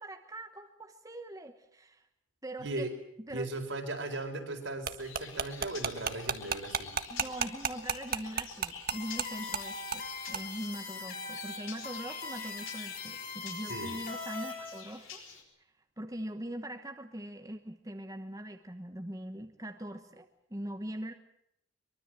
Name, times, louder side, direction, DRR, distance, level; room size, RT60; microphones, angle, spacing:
voice 1, 0.0-2.1 2.4-2.9 3.2-3.5 7.1-15.2 16.0-21.1, right 1 dB, 15° right, 6 dB, 1.2 m, -42 dB
voice 2, 2.6-2.9 3.3-6.9 13.7-13.9, right 2 dB, 65° right, 4 dB, 4.6 m, -37 dB
sound 1, 4.9-9.3 9.5-9.6 9.9-10.1 10.3-10.4, right 6 dB, 45° right, 1.5 m, -32 dB
sound 2, 5.0-15.4, left 7 dB, 90° left, 5.4 m, -49 dB
sound 3, 8.9-14.8, left 4 dB, 45° left, 4.7 m, -41 dB
23.5 x 23.5 x 7.7 m, 0.74 s
head